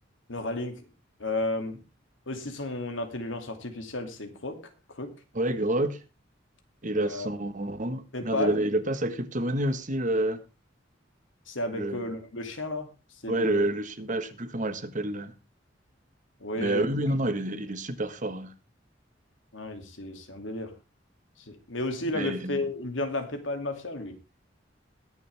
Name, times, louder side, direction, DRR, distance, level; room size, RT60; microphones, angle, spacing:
voice 1, 0.3-0.7 1.2-1.8 2.3-4.6 4.9-5.1 6.9-7.3 8.1-8.6 11.5-12.9 13.2-13.6 16.4-16.9 19.5-20.7 21.5-24.2, left 2 dB, 90° left, 2.6 m, -32 dB
voice 2, 5.3-6.0 6.8-10.4 11.7-12.0 13.3-15.3 16.6-18.5 22.1-22.6, right 1 dB, 45° right, 1.5 m, -28 dB
21.5 x 7.2 x 3.5 m
head